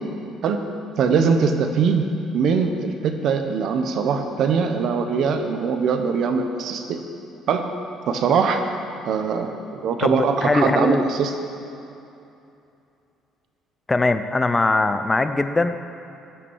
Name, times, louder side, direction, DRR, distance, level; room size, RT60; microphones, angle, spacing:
voice 1, 1.0-2.1 2.3-7.0 7.5-7.7 8.1-8.6 9.0-11.3, right 5 dB, 60° right, 6 dB, 1.0 m, -21 dB
voice 2, 10.0-11.0 13.9-15.7, left 2 dB, 15° left, 10 dB, 0.5 m, -21 dB
14.0 x 5.9 x 6.3 m, 2.7 s
cardioid pair, 130°, 0 cm